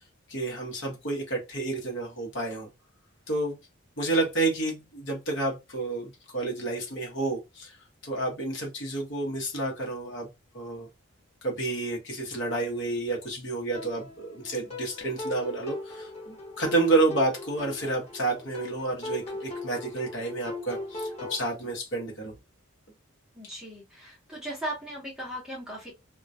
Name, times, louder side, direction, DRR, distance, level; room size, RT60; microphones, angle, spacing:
voice 1, 0.3-2.7 3.3-3.6 4.0-7.8 8.0-10.3 10.5-10.9 11.4-22.4, right 2 dB, 55° left, 0.9 m, -30 dB
sound 1, 13.7-21.4, left 2 dB, 30° left, 1.0 m, -39 dB
voice 2, 23.4-25.9, right 1 dB, 5° right, 0.7 m, -37 dB
2.2 x 2.2 x 2.5 m
head